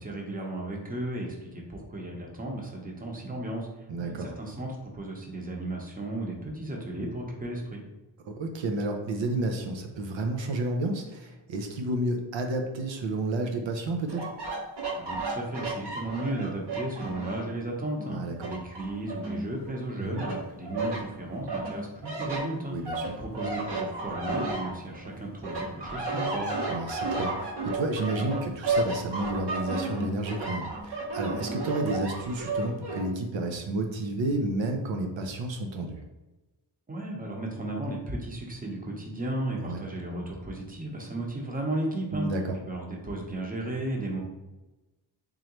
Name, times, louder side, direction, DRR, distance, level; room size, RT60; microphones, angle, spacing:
voice 1, 0.0-3.7 4.0-7.8 15.0-18.2 18.5-22.7 23.2-26.6 36.9-42.3 42.6-44.2, right 1 dB, 20° right, 0 dB, 0.8 m, -34 dB
voice 2, 3.9-4.3 8.3-14.3 18.1-18.5 20.0-20.2 22.7-23.2 26.7-36.0 39.6-39.8 42.1-42.6, right 2 dB, 85° right, 3 dB, 0.7 m, -31 dB
sound 1, 14.1-17.5 18.0-19.8 20.2-21.0 21.5-25.1 25.4-33.0, right 2 dB, 65° right, 1.1 m, -32 dB
3.8 x 3.2 x 3.0 m, 1.1 s
wide cardioid pair, 85°, 44 cm